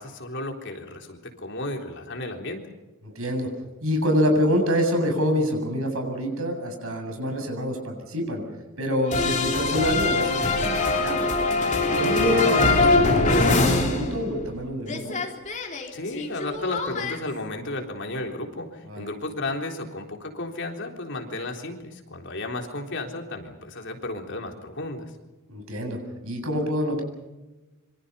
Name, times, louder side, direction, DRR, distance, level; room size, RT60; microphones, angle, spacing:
voice 1, 0.0-2.7 15.9-25.1, left 2 dB, 55° left, 3 dB, 3.8 m, -33 dB
voice 2, 3.0-3.5 3.8-8.4 8.8-11.3 12.0-15.1 18.9-19.1 25.5-27.0, equal, 70° right, 4 dB, 7.7 m, -26 dB
sound 1, 9.1-14.6 14.8-17.2, left 3 dB, 35° left, 3.4 m, -23 dB
27.0 x 25.0 x 5.6 m, 1.1 s
head